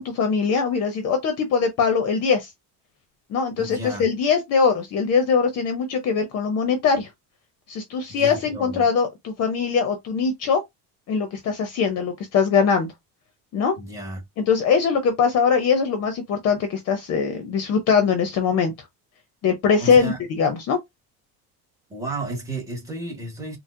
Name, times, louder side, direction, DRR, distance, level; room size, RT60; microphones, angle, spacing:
voice 1, 0.0-2.5 3.3-7.1 7.7-10.6 11.1-12.9 13.5-13.8 14.4-18.7 19.4-20.8, left 6 dB, 40° left, 0.6 m, -21 dB
voice 2, 3.6-4.1 8.1-8.9 13.8-14.2 19.8-20.2 21.9-23.6, right 2 dB, 10° right, 1.0 m, -33 dB
4.3 x 2.1 x 2.5 m
cardioid pair, 175°, 38 cm